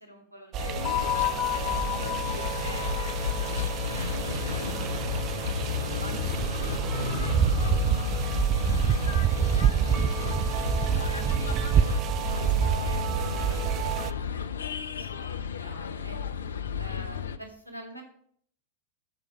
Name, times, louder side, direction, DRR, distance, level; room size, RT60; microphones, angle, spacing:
voice 1, 0.0-2.1 2.6-5.3 5.9-9.7 10.0-10.4 10.9-16.2 16.8-18.0, equal, 85° right, 3 dB, 2.5 m, -48 dB
sound 1, 0.5-14.1, right 11 dB, 35° right, 0.4 m, -28 dB
sound 2, 0.6-17.4, left 8 dB, 70° left, 0.6 m, -32 dB
sound 3, 0.8-5.5, left 15 dB, 45° left, 1.1 m, -33 dB
14.0 x 5.1 x 6.2 m, 0.65 s
figure-of-eight pair, 90°, 0 cm